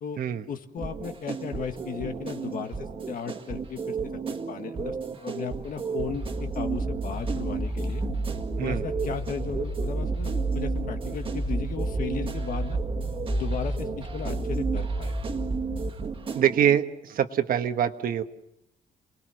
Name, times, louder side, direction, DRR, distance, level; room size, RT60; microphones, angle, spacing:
voice 1, 0.5-4.0 4.5-8.0 8.6-12.8 13.3-15.2, left 7 dB, 60° left, 6 dB, 1.6 m, -36 dB
sound 1, 0.8-16.8, right 5 dB, 35° right, 1.8 m, -34 dB
sound 2, 6.1-15.9, right 1 dB, 5° right, 2.2 m, -31 dB
voice 2, 16.3-18.2, right 9 dB, 65° right, 8 dB, 1.4 m, -24 dB
28.5 x 20.5 x 6.5 m, 0.82 s
wide cardioid pair, 175°, 16 cm